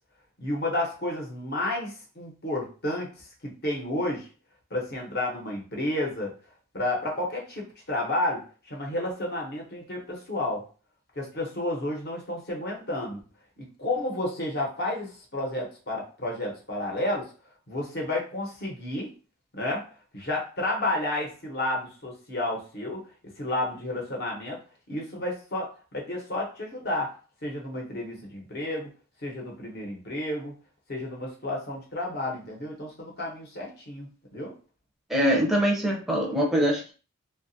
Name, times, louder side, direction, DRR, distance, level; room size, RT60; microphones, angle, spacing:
voice 1, 0.4-4.3 4.7-6.3 6.7-10.6 11.2-13.2 13.6-17.3 17.7-19.1 19.5-19.8 20.1-23.0 23.4-24.6 24.9-27.1 27.4-28.9 29.2-30.5 30.9-34.5, left 1 dB, 45° left, -1 dB, 0.9 m, -31 dB
voice 2, 35.1-36.9, equal, ahead, -3 dB, 0.5 m, -23 dB
2.8 x 2.4 x 2.6 m, 0.36 s
head